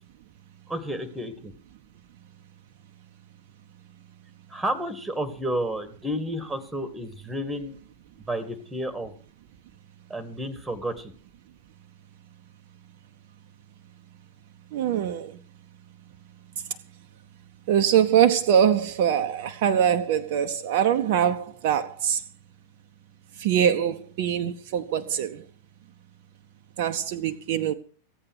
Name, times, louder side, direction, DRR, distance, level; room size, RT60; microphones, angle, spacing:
voice 1, 0.7-1.5 4.5-7.8 8.3-9.1 10.1-11.1, right 1 dB, 5° right, 2.1 m, -31 dB
voice 2, 14.7-15.3 17.7-22.2 23.4-25.4 26.8-27.7, right 9 dB, 50° right, 1.0 m, -23 dB
15.5 x 8.8 x 6.5 m
figure-of-eight pair, 90°, 0 cm